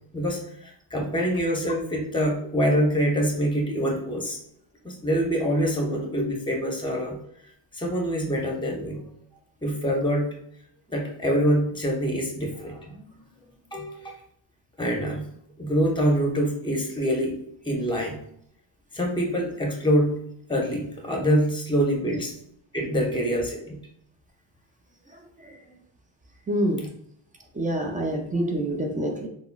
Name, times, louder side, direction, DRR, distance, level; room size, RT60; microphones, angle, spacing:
voice 1, 0.1-4.4 4.8-7.2 7.7-9.0 9.6-10.3 10.9-14.1 14.8-15.3 15.6-17.4 17.6-18.2 18.9-20.2 20.5-22.3 22.7-23.8, equal, 10° left, -1 dB, 0.8 m, -25 dB
voice 2, 25.1-25.6 26.5-26.9 27.5-29.3, right 1 dB, 15° right, 2 dB, 0.5 m, -27 dB
3.7 x 2.0 x 2.2 m, 0.70 s
cardioid pair, 85°, 50 cm